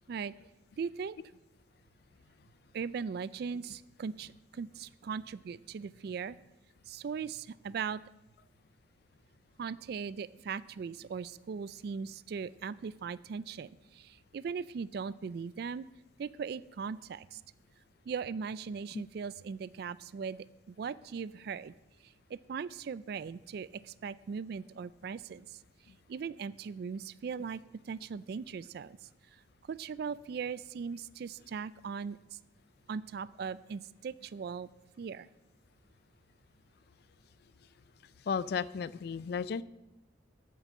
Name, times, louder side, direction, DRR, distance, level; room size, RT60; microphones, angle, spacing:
voice 1, 0.8-1.2 2.7-6.4 6.9-8.0 9.6-15.9 16.2-17.4 18.1-21.7 22.0-25.6 26.1-29.0 29.7-32.4 32.9-34.7 35.0-35.3, right 6 dB, 55° right, 18 dB, 0.3 m, -39 dB
voice 2, 38.3-39.6, left 6 dB, 55° left, 18 dB, 0.3 m, -33 dB
8.8 x 6.7 x 7.5 m, 0.97 s
head